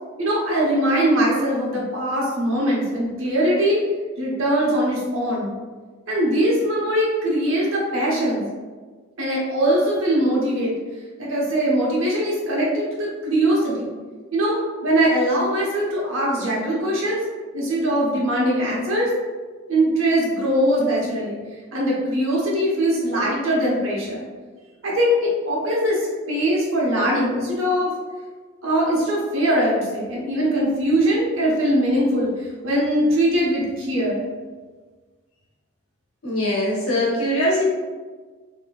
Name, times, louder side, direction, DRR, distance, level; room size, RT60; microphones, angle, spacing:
voice 1, 0.2-3.8 4.2-5.5 6.1-8.4 9.2-10.7 11.2-13.9 14.3-14.6 14.8-17.2 17.5-19.1 19.7-21.4 21.7-24.2 24.8-26.0 26.3-27.9 28.6-32.3 32.6-34.2, right 1 dB, 70° right, -4 dB, 1.1 m, -21 dB
voice 2, 36.2-37.7, left 1 dB, 90° left, -4 dB, 1.2 m, -21 dB
4.1 x 3.0 x 2.4 m, 1.4 s
head